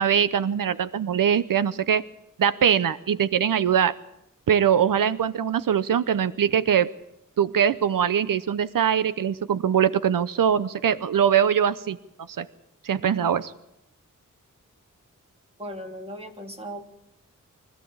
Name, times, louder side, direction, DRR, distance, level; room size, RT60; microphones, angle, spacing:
voice 1, 0.0-2.0 2.4-3.9 4.5-6.9 7.4-12.0 12.3-12.5 12.8-13.5, right 8 dB, 85° right, 14 dB, 0.8 m, -22 dB
voice 2, 15.6-16.8, equal, 20° right, 3 dB, 3.2 m, -37 dB
24.0 x 15.0 x 8.7 m, 0.85 s
wide cardioid pair, 140°, 32 cm